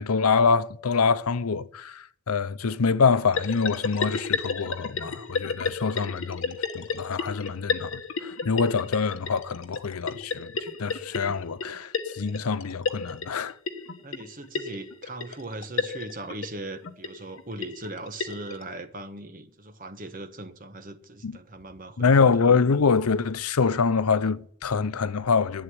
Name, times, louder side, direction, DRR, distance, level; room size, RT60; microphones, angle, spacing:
voice 1, 0.0-10.5 10.8-13.5 21.2-21.3 22.0-25.6, left 5 dB, 90° left, 0.7 m, -25 dB
sound 1, 3.3-18.6, left 4 dB, 65° left, 1.2 m, -32 dB
voice 2, 14.0-22.5, right 2 dB, 40° right, 1.2 m, -39 dB
11.5 x 8.1 x 9.7 m
head